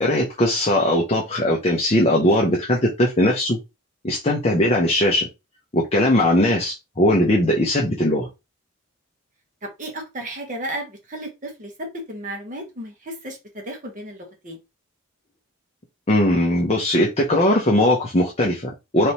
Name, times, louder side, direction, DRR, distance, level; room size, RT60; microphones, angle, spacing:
voice 1, 0.0-3.6 4.0-5.3 5.7-8.3 16.1-19.1, left 1 dB, 30° left, 0.7 m, -19 dB
voice 2, 9.6-14.6, right 1 dB, 35° right, 1.0 m, -34 dB
4.1 x 3.3 x 2.9 m
head